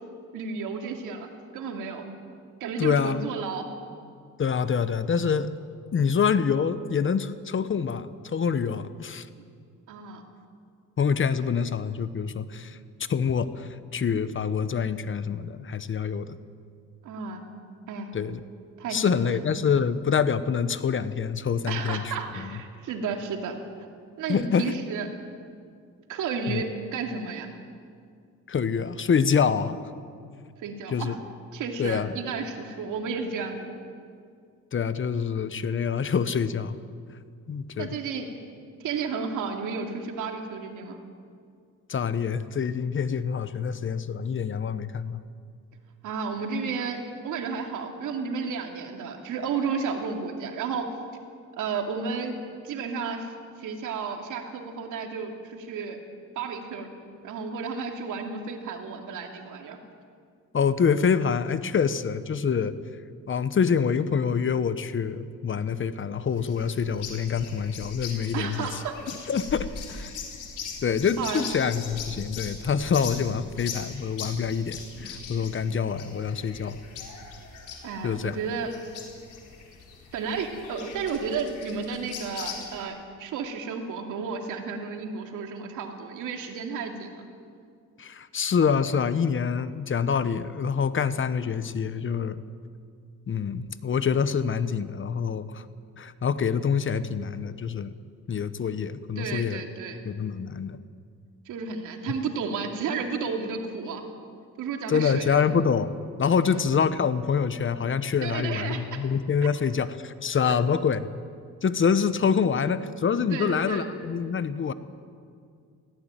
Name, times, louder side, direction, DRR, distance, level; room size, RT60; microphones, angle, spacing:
voice 1, 0.3-1.3 1.5-2.1 2.6-3.7 9.9-10.2 17.0-17.4 17.9-18.1 18.8-19.4 21.7-23.6 24.2-25.1 26.1-27.5 30.6-31.1 31.5-33.7 37.8-38.3 38.8-41.0 46.0-50.9 51.6-52.4 52.6-56.0 56.4-56.9 57.2-59.8 68.3-69.0 71.2-71.5 77.8-78.7 80.1-87.2 99.2-100.1 101.5-104.1 104.6-105.5 108.2-109.0 113.3-113.9, right 5 dB, 85° right, 3 dB, 2.7 m, -32 dB
voice 2, 2.8-3.2 4.4-5.5 5.9-9.3 11.0-12.8 13.1-16.4 18.1-18.4 18.9-22.2 22.4-22.5 24.3-24.7 26.5-26.6 28.5-29.8 30.9-31.1 31.8-32.1 34.7-36.8 37.5-37.9 41.9-45.2 60.5-62.7 63.3-68.8 69.3-70.1 70.8-76.8 78.0-78.3 88.0-92.4 93.3-95.6 96.0-97.9 98.3-99.6 100.0-100.8 104.9-105.9 106.2-111.0 111.6-114.7, left 6 dB, 40° left, 13 dB, 1.0 m, -26 dB
sound 1, 66.4-82.8, left 6 dB, 80° left, 4.2 m, -40 dB
18.0 x 16.5 x 9.1 m, 2.2 s
cardioid pair, 90°, 30 cm